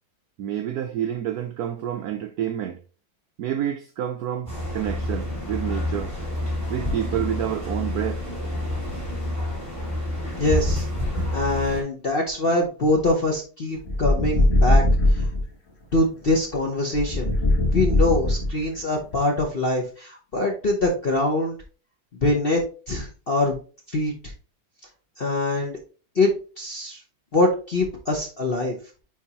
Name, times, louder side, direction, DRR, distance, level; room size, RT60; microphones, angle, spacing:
voice 1, 0.4-2.8 3.4-6.1 6.7-8.3, right 10 dB, 80° right, 0.8 m, -28 dB
sound 1, 4.5-11.8, left 1 dB, 15° left, 2.6 m, -28 dB
voice 2, 10.4-10.9 11.3-15.3 15.9-17.3 17.7-21.5 22.2-22.6 22.9-23.6 23.9-24.1 25.2-25.8 26.1-26.3 26.6-27.0 27.3-28.8, left 2 dB, 50° left, 0.6 m, -23 dB
sound 2, 13.8-15.4 16.9-18.8, left 1 dB, 35° left, 1.5 m, -20 dB
9.4 x 3.5 x 2.8 m
omnidirectional pair, 2.2 m